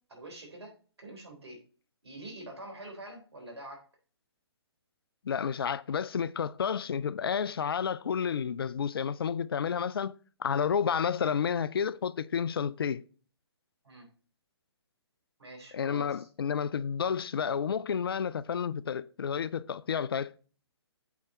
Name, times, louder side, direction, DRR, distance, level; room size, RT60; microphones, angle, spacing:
voice 1, 0.1-0.7 1.0-1.6 2.0-3.8 13.8-14.1 15.4-16.3, right 1 dB, 70° right, 3.5 m, -45 dB
voice 2, 5.2-13.0 15.7-20.3, left 7 dB, 60° left, 0.4 m, -31 dB
8.4 x 4.7 x 4.1 m
figure-of-eight pair, 135°, 14 cm